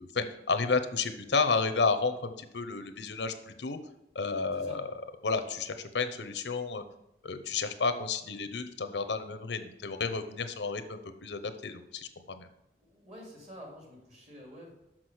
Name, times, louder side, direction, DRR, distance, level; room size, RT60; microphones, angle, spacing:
voice 1, 0.0-3.8 4.1-4.9 5.2-6.8 7.2-12.5, left 4 dB, 85° left, 9 dB, 0.7 m, -31 dB
voice 2, 4.5-4.8 12.8-14.7, equal, 40° right, -1 dB, 2.7 m, -48 dB
6.1 x 6.0 x 6.3 m, 0.85 s
head